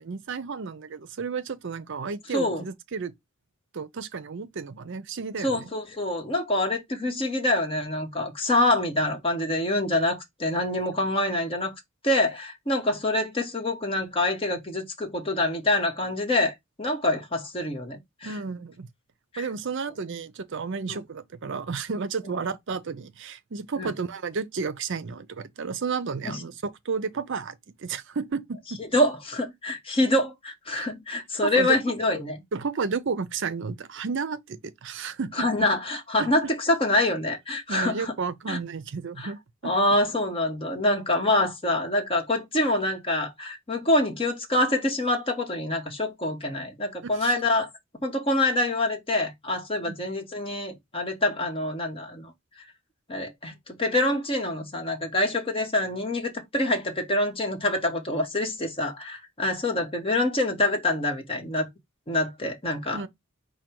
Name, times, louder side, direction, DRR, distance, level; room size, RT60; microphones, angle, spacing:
voice 1, 0.0-3.1 3.7-5.7 18.2-18.9 19.4-28.8 30.7-30.9 31.4-31.8 32.5-35.5 36.2-36.3 37.7-39.7 47.0-47.3 49.9-50.0 62.9-63.1, right 5 dB, 60° right, 0.5 m, -32 dB
voice 2, 2.3-2.6 5.4-11.7 12.0-18.3 19.3-19.5 20.9-21.0 23.8-23.9 26.2-26.4 28.9-32.4 35.4-38.1 38.5-38.6 39.2-39.3 39.6-47.7 48.0-52.3 53.1-61.7 62.1-63.0, left 1 dB, 25° left, 1.1 m, -26 dB
4.9 x 2.3 x 4.3 m
head